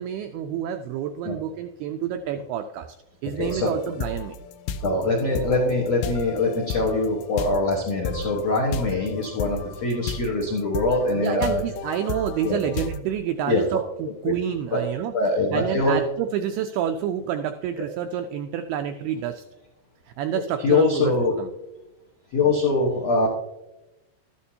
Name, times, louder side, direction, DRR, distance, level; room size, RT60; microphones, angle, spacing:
voice 1, 0.0-2.9 3.2-4.4 11.2-15.1 15.5-19.4 20.1-21.5, right 9 dB, 85° right, 7 dB, 2.3 m, -28 dB
sound 1, 3.4-13.0, left 4 dB, 90° left, 3.0 m, -33 dB
voice 2, 3.4-3.7 4.8-11.6 12.4-12.6 13.5-13.6 14.2-14.3 14.7-14.8 15.1-16.0 20.6-21.3 22.3-23.3, left 3 dB, 75° left, -3 dB, 1.5 m, -23 dB
13.0 x 11.0 x 2.8 m, 0.97 s
omnidirectional pair, 5.1 m